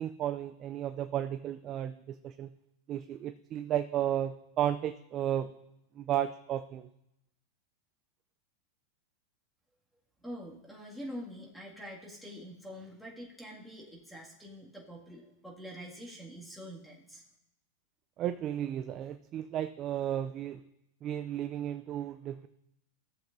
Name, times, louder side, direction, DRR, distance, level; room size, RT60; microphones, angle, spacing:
voice 1, 0.0-2.5 2.9-5.5 6.0-6.9 18.2-20.6 21.0-22.5, right 11 dB, 40° right, 10 dB, 0.4 m, -33 dB
voice 2, 10.2-17.2, equal, ahead, -3 dB, 2.0 m, -45 dB
15.0 x 7.5 x 2.6 m, 0.84 s
hypercardioid pair, 110°, 0 cm